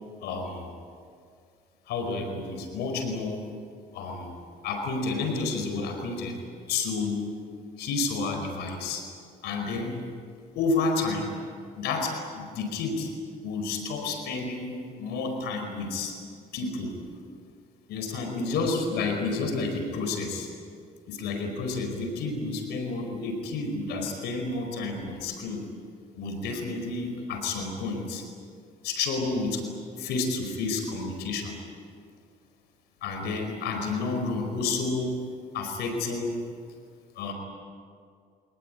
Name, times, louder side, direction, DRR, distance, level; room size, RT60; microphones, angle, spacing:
voice 1, 0.2-0.7 1.9-3.5 3.9-4.4 4.6-6.4 6.7-7.2 7.8-9.0 9.4-10.0 10.5-11.3 11.7-13.1 13.4-16.1 16.5-16.9 17.9-20.5 21.1-25.7 26.2-28.2 28.8-29.6 30.0-31.6 33.0-35.2 35.5-36.4 37.2-37.3, left 3 dB, 80° left, 4 dB, 4.9 m, -30 dB
25.0 x 20.0 x 9.7 m, 2.2 s
cardioid pair, 110°, 17 cm